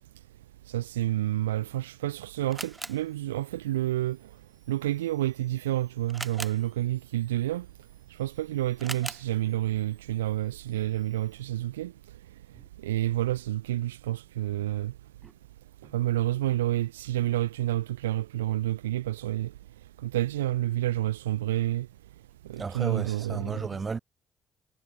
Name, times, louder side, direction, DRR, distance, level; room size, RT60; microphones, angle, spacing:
voice 1, 0.7-4.2 4.7-7.6 8.2-11.9 12.8-14.9 15.9-19.5 20.0-21.9 22.5-23.6, right 14 dB, 85° right, 0.9 m, -29 dB
Camera, 1.6-11.4, right 2 dB, 20° right, 4.9 m, -46 dB
voice 2, 22.6-24.0, right 4 dB, 35° right, 5.1 m, -34 dB
hypercardioid pair, 45°, 0 cm